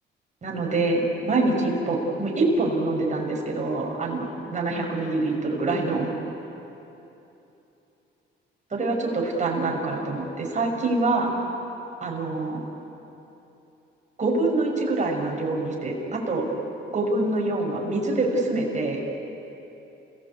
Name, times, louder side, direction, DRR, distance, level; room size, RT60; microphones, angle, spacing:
voice 1, 0.4-6.1 8.7-11.3 12.0-12.6 14.2-16.5 16.9-19.0, right 2 dB, 35° right, 0 dB, 6.0 m, -25 dB
29.5 x 17.5 x 8.5 m, 3.0 s
cardioid pair, 90°, 20 cm